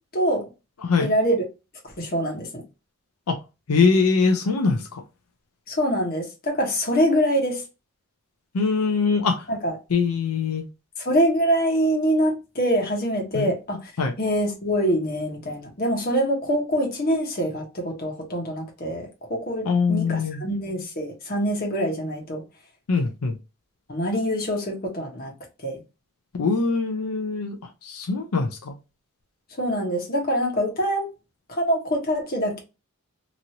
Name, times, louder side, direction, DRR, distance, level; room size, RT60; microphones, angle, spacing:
voice 1, 0.1-0.5 1.0-1.4 2.0-2.6 5.7-7.6 9.5-9.8 11.0-13.9 14.2-22.4 23.9-25.3 25.6-25.8 29.6-31.1 31.5-32.6, equal, 40° left, 1.1 m, -24 dB
voice 2, 3.7-5.0 8.5-9.4 9.9-10.6 13.3-13.5 14.0-14.1 19.6-20.4 22.9-23.3 26.4-27.6 27.8-28.8, left 4 dB, 85° left, 0.5 m, -22 dB
3.0 x 2.6 x 2.8 m
head